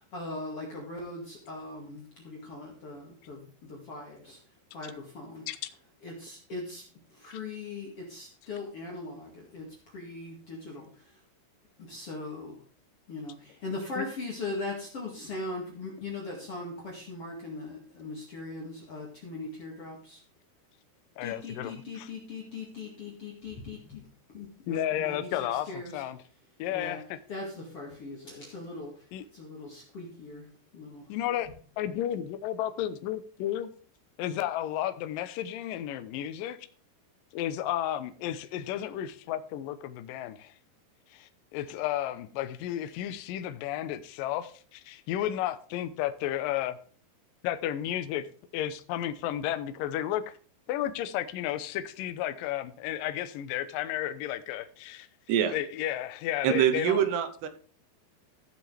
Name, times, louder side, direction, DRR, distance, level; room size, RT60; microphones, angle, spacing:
voice 1, 0.1-4.4 4.7-5.5 6.0-6.8 7.1-11.2 11.8-12.6 13.1-20.2 21.2-26.0 26.7-27.0 27.3-29.1 29.3-31.1, left 2 dB, 40° left, -2 dB, 2.5 m, -40 dB
voice 2, 21.2-22.1 24.7-26.2 26.6-27.2 29.1-29.2 31.1-31.5 31.8-33.7 34.2-36.6 37.3-40.5 41.1-46.7 47.4-48.3 48.5-50.2 50.7-55.1 55.5-57.0, left 12 dB, 75° left, 11 dB, 2.1 m, -32 dB
voice 3, 56.4-57.5, right 9 dB, 75° right, 10 dB, 2.9 m, -25 dB
15.5 x 7.6 x 3.4 m, 0.43 s
omnidirectional pair, 5.0 m